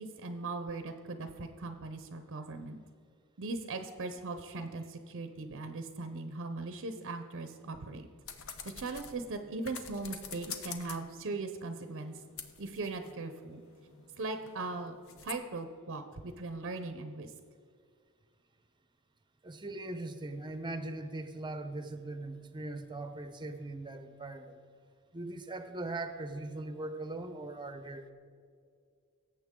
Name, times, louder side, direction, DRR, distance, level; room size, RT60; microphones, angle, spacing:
voice 1, 0.0-2.8 3.4-8.1 8.6-12.2 12.6-13.6 14.2-14.9 15.2-17.3, right 3 dB, 60° right, 8 dB, 0.7 m, -39 dB
sound 1, 8.3-11.2 11.7-15.3, left 6 dB, 65° left, 0.9 m, -47 dB
voice 2, 19.4-24.6 25.1-28.1, right 2 dB, 20° right, 9 dB, 0.8 m, -40 dB
18.0 x 7.8 x 3.7 m, 2.2 s
head